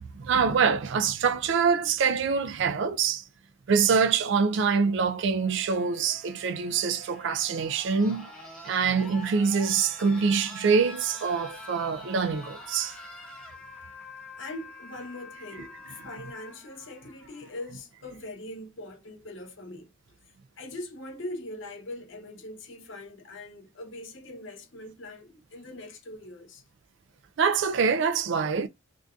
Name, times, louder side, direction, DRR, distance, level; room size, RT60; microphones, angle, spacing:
voice 1, 0.1-3.2 3.7-8.3 8.6-13.0 27.4-28.7, right 5 dB, 60° right, 0.3 m, -25 dB
sound 1, 3.7-17.7 18.9-19.0, left 1 dB, 5° left, 0.9 m, -46 dB
voice 2, 14.4-19.9 20.6-26.6, left 1 dB, 65° left, 0.9 m, -41 dB
3.6 x 2.5 x 2.3 m
head